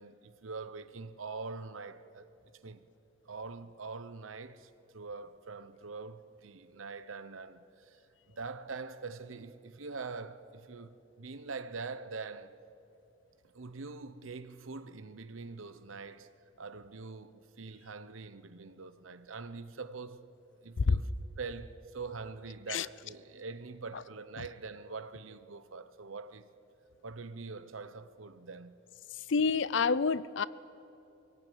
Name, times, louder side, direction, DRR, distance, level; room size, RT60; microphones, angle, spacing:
voice 1, 0.0-2.3 2.6-2.8 3.2-8.0 8.3-12.6 13.5-20.3 20.6-21.1 21.4-26.5 27.0-28.8, right 4 dB, 85° right, 0.9 m, -44 dB
voice 2, 29.1-30.5, left 5 dB, 65° left, 0.5 m, -28 dB
22.0 x 17.0 x 9.2 m
head